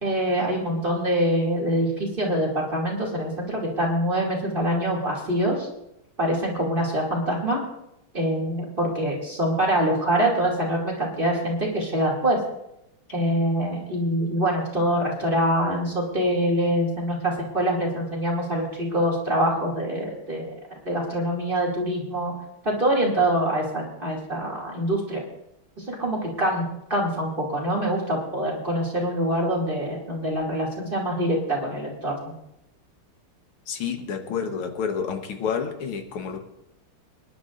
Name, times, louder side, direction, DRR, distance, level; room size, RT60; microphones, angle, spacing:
voice 1, 0.0-5.7 6.2-7.6 8.1-12.4 13.1-20.5 20.8-22.3 22.6-25.2 25.8-26.6 26.9-32.3, right 1 dB, 25° right, -3 dB, 2.6 m, -25 dB
voice 2, 33.7-36.4, left 6 dB, 85° left, 5 dB, 2.1 m, -29 dB
26.5 x 11.0 x 2.5 m, 0.83 s
omnidirectional pair, 2.3 m